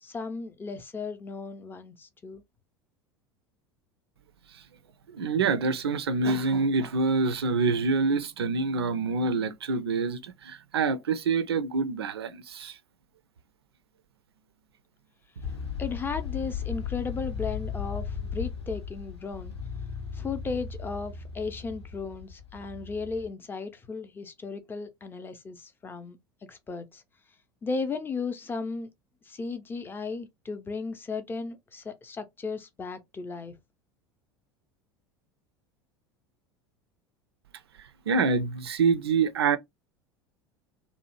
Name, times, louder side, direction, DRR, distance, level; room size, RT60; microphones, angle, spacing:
voice 1, 0.0-2.4 15.8-19.5 20.1-26.2 26.5-27.0 27.6-28.9 29.3-33.5, left 4 dB, 15° left, 0.5 m, -35 dB
voice 2, 5.1-12.7 38.1-39.6, right 4 dB, 70° right, 0.4 m, -26 dB
sound 1, 15.4-23.3, left 6 dB, 85° left, 0.8 m, -36 dB
2.7 x 2.0 x 2.9 m
figure-of-eight pair, 75°, 14 cm